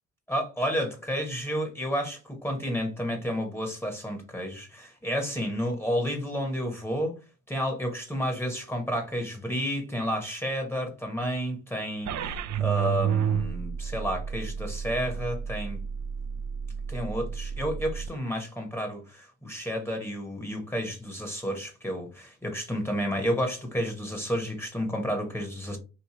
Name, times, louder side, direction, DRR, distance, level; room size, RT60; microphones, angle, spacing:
voice 1, 0.3-7.2 7.5-12.1 12.6-15.8 16.9-25.8, equal, 10° left, 1.0 m, -31 dB
sound 1, 12.1-18.1, right 8 dB, 65° right, 0.5 m, -31 dB
3.0 x 2.4 x 3.7 m
cardioid pair, 90°, 30 cm